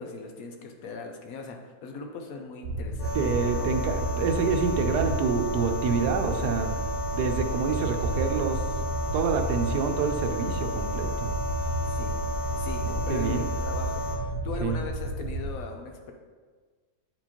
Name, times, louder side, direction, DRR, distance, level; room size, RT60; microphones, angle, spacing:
voice 1, 0.0-3.2 3.5-3.7 4.1-4.2 11.9-12.2 12.6-16.1, left 4 dB, 70° left, 3 dB, 1.0 m, -39 dB
sound 1, 2.6-15.5, right 1 dB, 65° right, 0.7 m, -31 dB
sound 2, 3.0-14.2, left 1 dB, 50° left, 1.4 m, -34 dB
voice 2, 3.1-6.7 7.1-8.6 9.1-11.3 12.8-13.5 14.6-14.8, right 5 dB, 80° right, 6 dB, 1.2 m, -27 dB
Wind instrument woodwind instrument, 5.1-12.9, left 5 dB, 90° left, 1.8 m, -52 dB
8.1 x 4.5 x 2.9 m, 1.5 s
omnidirectional pair, 1.7 m